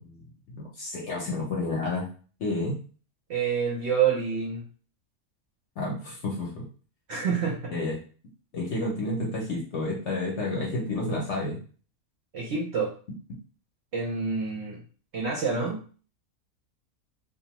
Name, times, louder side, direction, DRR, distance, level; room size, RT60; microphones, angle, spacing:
voice 1, 0.5-2.1 2.4-2.8 5.8-6.6 7.7-8.0 8.5-11.6, left 2 dB, 60° left, -3 dB, 0.9 m, -30 dB
voice 2, 3.3-4.6 7.1-7.7 12.3-12.9 13.9-14.8 15.1-15.8, right 6 dB, 60° right, -3 dB, 0.8 m, -27 dB
2.6 x 2.2 x 2.9 m, 0.40 s
omnidirectional pair, 1.5 m